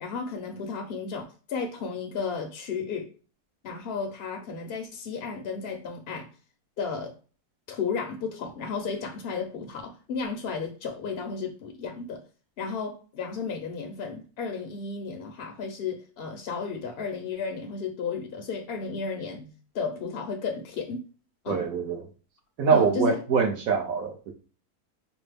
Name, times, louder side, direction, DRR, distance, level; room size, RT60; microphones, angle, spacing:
voice 1, 0.0-3.1 3.6-6.3 6.8-7.1 7.7-12.2 12.6-21.0 21.4-21.6 22.7-23.2, left 5 dB, 60° left, 3 dB, 0.6 m, -33 dB
voice 2, 21.5-22.1 22.6-24.3, right 6 dB, 70° right, 5 dB, 1.1 m, -24 dB
5.1 x 2.0 x 3.3 m, 0.37 s
omnidirectional pair, 1.6 m